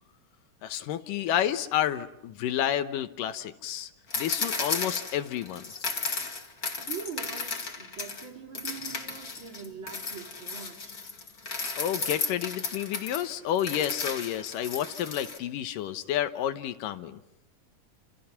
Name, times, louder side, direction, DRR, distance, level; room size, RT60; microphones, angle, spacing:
voice 1, 0.6-3.9 4.2-5.7 11.7-17.2, left 11 dB, 85° left, 2.7 m, -30 dB
sound 1, 4.1-8.3 8.5-15.4, left 4 dB, 30° left, 2.2 m, -34 dB
voice 2, 6.8-11.0, right 6 dB, 40° right, 3.1 m, -42 dB
29.5 x 28.5 x 5.9 m
omnidirectional pair, 3.7 m